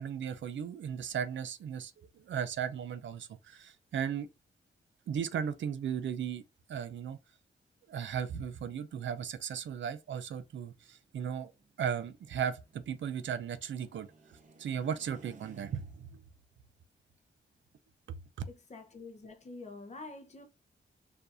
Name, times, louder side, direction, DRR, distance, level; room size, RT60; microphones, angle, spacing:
voice 1, 0.0-4.3 5.1-6.4 6.7-7.2 7.9-11.5 11.8-14.1 14.6-16.2, right 8 dB, 80° right, 0.5 m, -36 dB
sound 1, 10.7-16.2, right 4 dB, 40° right, 0.7 m, -58 dB
voice 2, 18.5-20.4, left 3 dB, 35° left, 0.9 m, -47 dB
6.7 x 2.6 x 2.7 m
wide cardioid pair, 160°, 19 cm